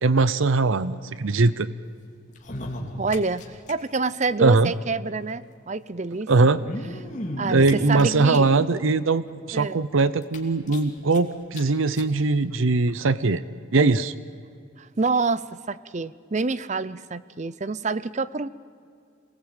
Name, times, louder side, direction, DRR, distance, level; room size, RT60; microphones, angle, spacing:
voice 1, 0.0-1.7 4.4-4.7 6.3-6.6 7.5-13.4 13.7-14.1, right 3 dB, 80° right, 16 dB, 0.7 m, -21 dB
sound 1, 2.3-3.7 4.0-4.1 4.3-4.4 5.4-5.5 6.4-8.7 9.3-9.4 9.7-9.8 10.2-11.2 11.5-11.6 11.9-12.1 12.9-13.0, left 1 dB, 35° left, 2.8 m, -34 dB
voice 2, 3.0-6.3 7.4-8.5 9.5-9.8 14.8-18.5, right 3 dB, 35° right, 17 dB, 0.6 m, -27 dB
26.5 x 19.0 x 9.0 m, 2.3 s
head